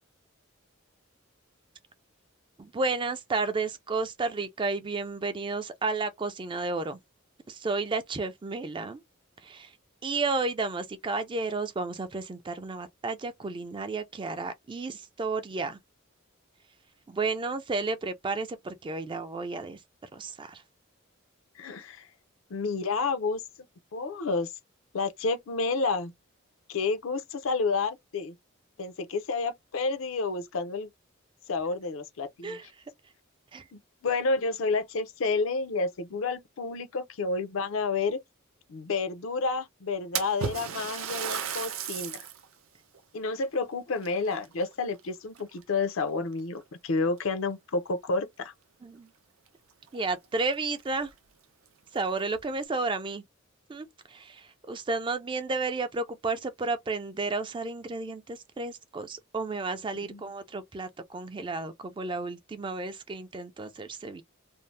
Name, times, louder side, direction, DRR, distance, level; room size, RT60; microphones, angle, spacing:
voice 1, 2.6-7.0 7.5-9.0 9.4-9.7 10.0-15.8 17.1-19.8 20.1-20.6 32.4-32.7 33.5-33.6 48.8-49.1 49.9-51.1 51.9-53.2 53.7-64.2, right 3 dB, 25° right, 0.3 m, -32 dB
voice 2, 21.6-22.1 22.5-23.4 23.9-24.5 24.9-26.1 26.7-28.3 28.8-30.9 31.5-32.6 33.7-38.2 38.7-42.3 43.1-48.5 60.0-60.2, left 4 dB, 70° left, 0.5 m, -30 dB
Splash splatter, 40.2-42.5 42.9-43.0 44.0-45.0 45.4-45.8 46.6-46.7 47.2-47.3 49.5-49.6 49.9-50.0 50.5-50.6 51.0-51.1 51.9-52.4, right 8 dB, 75° right, 0.5 m, -35 dB
2.6 x 2.0 x 3.1 m
head